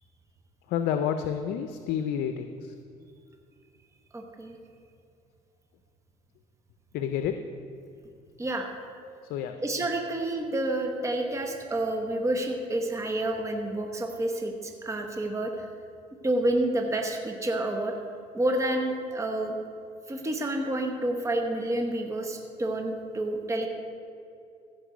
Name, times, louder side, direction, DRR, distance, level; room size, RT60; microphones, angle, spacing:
voice 1, 0.7-2.5 6.9-7.3 9.3-9.6, left 9 dB, 80° left, 8 dB, 0.5 m, -29 dB
voice 2, 4.1-4.6 8.4-8.7 9.6-15.7 16.2-17.9 18.3-19.6 20.1-23.7, right 1 dB, 20° right, 3 dB, 1.1 m, -29 dB
15.5 x 5.3 x 5.0 m, 2.5 s
supercardioid pair, 85°, 15 cm